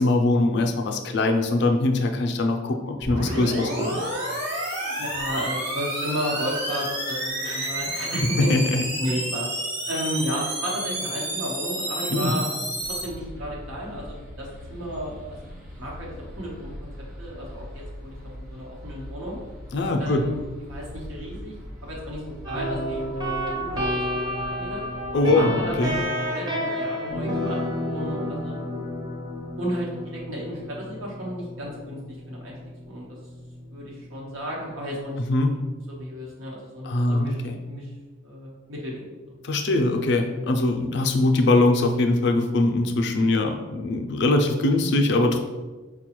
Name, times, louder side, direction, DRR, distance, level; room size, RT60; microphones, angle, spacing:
voice 1, 0.0-4.0 7.4-7.7 8.5-8.8 12.1-12.3 19.7-20.2 25.1-25.9 35.3-35.5 36.8-37.6 39.4-45.4, left 2 dB, 55° left, 4 dB, 0.4 m, -22 dB
sound 1, 3.0-13.0, right 1 dB, 60° right, 1.1 m, -30 dB
voice 2, 5.0-8.7 9.0-9.5 9.9-12.5 13.0-15.4 15.8-16.9 17.2-19.4 20.0-20.4 20.7-21.6 21.8-23.8 24.4-24.8 25.3-28.5 29.6-32.6 32.8-33.1 33.7-35.2 35.9-37.4 37.6-37.9 38.2-39.1, equal, 80° right, -3 dB, 1.0 m, -33 dB
sound 2, 12.8-26.0, left 1 dB, 40° right, 0.9 m, -41 dB
sound 3, 22.4-35.9, equal, 20° right, 0.6 m, -31 dB
4.7 x 2.2 x 3.0 m, 1.3 s
head